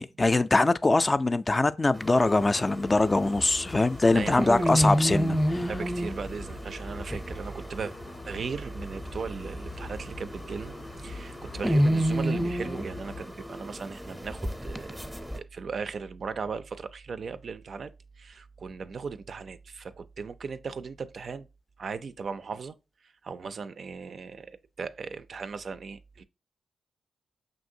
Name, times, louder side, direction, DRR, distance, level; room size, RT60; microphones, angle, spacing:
voice 1, 0.0-5.7, left 2 dB, 30° left, 0.3 m, -23 dB
sound 1, 1.9-15.4, equal, 5° right, 0.6 m, -31 dB
sound 2, 2.8-13.2, left 3 dB, 85° left, 0.5 m, -45 dB
voice 2, 4.1-5.0 5.7-7.9 8.3-17.9 18.2-21.5 21.8-22.8 23.0-26.2, right 5 dB, 60° right, 0.3 m, -37 dB
5.6 x 2.6 x 2.7 m
supercardioid pair, 45°, 0 cm